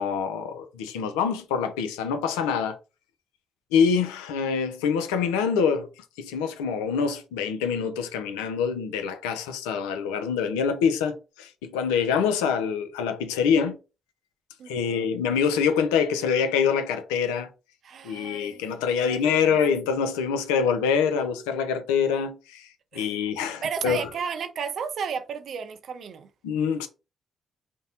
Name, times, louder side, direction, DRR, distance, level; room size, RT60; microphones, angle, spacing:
voice 1, 0.0-2.8 3.7-5.9 6.2-13.8 14.7-17.5 18.0-22.7 22.9-24.1 26.4-26.9, left 6 dB, 85° left, 0.3 m, -25 dB
voice 2, 14.6-15.1 17.8-18.6 18.9-19.6 22.9-23.1 23.6-26.3, right 6 dB, 65° right, 0.4 m, -33 dB
2.6 x 2.0 x 2.7 m
hypercardioid pair, 45°, 0 cm